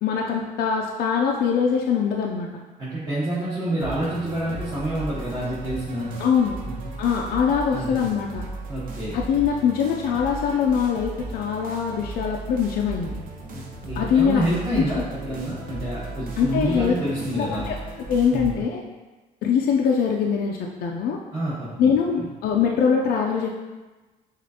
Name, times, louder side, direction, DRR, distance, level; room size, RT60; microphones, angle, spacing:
voice 1, 0.0-2.5 6.2-6.6 7.0-8.4 9.1-13.1 14.0-14.5 14.8-14.9 16.4-16.9 17.3-17.8 18.1-18.8 19.4-21.2 21.8-23.5, left 7 dB, 65° left, 0 dB, 0.4 m, -22 dB
voice 2, 2.8-6.1 7.7-8.0 8.7-9.1 13.5-17.7 18.3-18.5 21.3-22.3, right 1 dB, 20° right, -11 dB, 1.3 m, -28 dB
sound 1, 3.8-18.6, right 2 dB, 55° right, 0.7 m, -36 dB
6.1 x 2.5 x 2.8 m, 1.2 s
cardioid pair, 110°, 17 cm